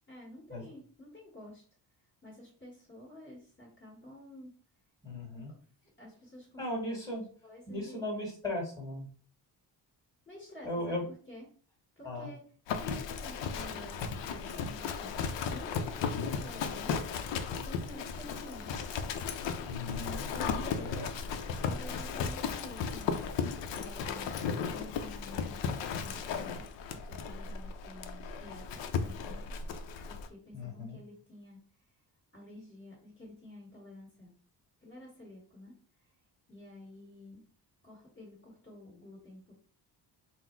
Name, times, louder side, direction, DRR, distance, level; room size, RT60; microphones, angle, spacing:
voice 1, 0.1-1.6 2.2-4.6 5.5-5.6 6.0-6.6 7.4-8.1 10.3-11.0 11.3-11.5 12.0-12.4 12.7-15.1 15.5-17.0 17.6-18.7 20.3-21.1 21.6-23.3 23.7-24.4 24.7-26.6 26.9-28.6 28.9-29.5 30.1-31.6 32.3-34.3 34.8-35.7 36.5-37.4 37.8-39.5, left 1 dB, 25° left, -3 dB, 1.6 m, -50 dB
voice 2, 5.0-5.5 6.6-7.3 7.7-9.1 10.6-11.0 12.0-12.3 19.6-20.3 20.8-21.1 30.5-31.0, left 1 dB, 10° left, -4 dB, 1.7 m, -37 dB
Livestock farm animals working animals, 12.7-30.3, left 6 dB, 85° left, 0.6 m, -35 dB
4.0 x 2.1 x 4.4 m, 0.42 s
cardioid pair, 155°, 42 cm